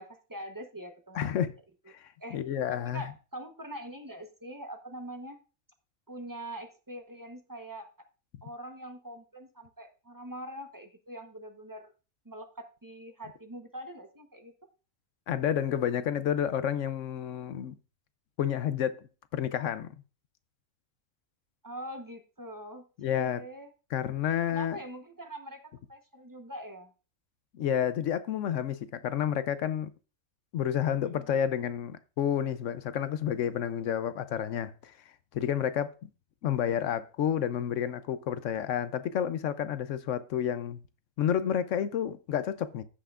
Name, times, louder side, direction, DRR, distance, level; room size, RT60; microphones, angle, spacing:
voice 1, 0.0-1.3 2.2-2.4 2.7-5.4 6.1-7.9 8.4-11.9 12.2-14.5 21.6-23.7 24.5-25.6 25.9-26.9 31.0-31.3 36.5-37.0, right 1 dB, 20° right, 0.8 m, -43 dB
voice 2, 1.1-1.5 1.9-3.1 15.3-17.7 18.4-19.0 19.3-19.9 23.0-23.4 23.9-24.8 27.5-29.9 30.5-34.9 35.3-35.9 36.4-40.8 41.2-42.8, left 9 dB, 70° left, 0.9 m, -30 dB
14.5 x 5.7 x 2.4 m
omnidirectional pair, 1.5 m